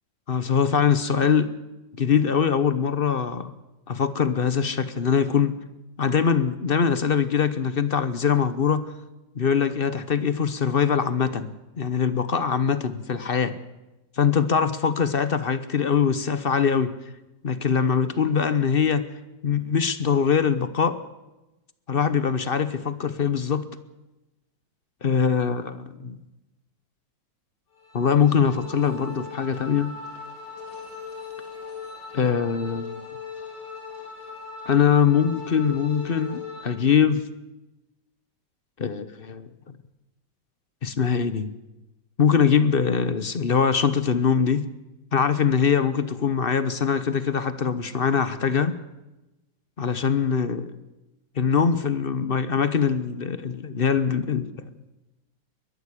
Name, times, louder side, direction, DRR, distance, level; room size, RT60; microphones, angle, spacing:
voice 1, 0.3-1.5 2.0-3.5 3.9-5.5 6.0-8.9 9.3-13.6 14.2-16.9 17.4-19.0 19.4-21.0 21.9-23.7 25.0-26.2 27.9-30.0 32.1-33.0 34.7-37.2 38.8-39.8 40.8-41.5 42.2-44.7 45.1-48.7 49.8-50.7 51.4-54.6, left 6 dB, 40° left, 13 dB, 0.9 m, -22 dB
sound 1, 27.7-36.7, left 5 dB, 90° left, 5.0 m, -39 dB
22.0 x 12.0 x 9.9 m, 1.0 s
omnidirectional pair, 2.1 m